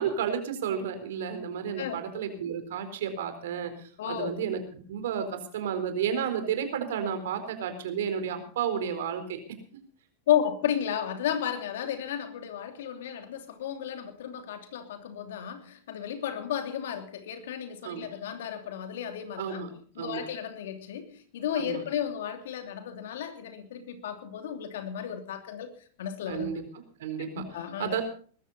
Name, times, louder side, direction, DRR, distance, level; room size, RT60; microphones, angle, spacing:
voice 1, 0.0-9.4 17.8-18.1 19.4-19.7 20.0-20.2 21.6-21.8 26.3-26.6 27.0-27.4 27.8-28.0, right 7 dB, 70° right, 8 dB, 4.2 m, -32 dB
voice 2, 4.0-4.4 10.3-19.6 19.9-25.7 26.0-26.6 27.3-28.0, left 9 dB, 75° left, 7 dB, 3.0 m, -33 dB
20.5 x 14.0 x 4.2 m, 0.43 s
hypercardioid pair, 105°, 0 cm